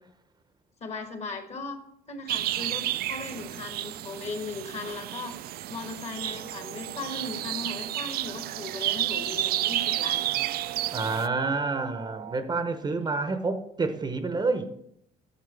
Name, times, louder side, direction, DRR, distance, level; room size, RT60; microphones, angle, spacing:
voice 1, 0.8-1.8 2.1-10.3, left 3 dB, 40° left, 1.5 m, -38 dB
sound 1, 2.3-11.3, right 14 dB, 65° right, 0.4 m, -31 dB
sound 2, 6.1-12.4, right 9 dB, 80° right, 1.0 m, -43 dB
voice 2, 10.9-14.7, right 3 dB, 25° right, 0.8 m, -28 dB
10.5 x 7.3 x 3.4 m
cardioid pair, 110°, 17 cm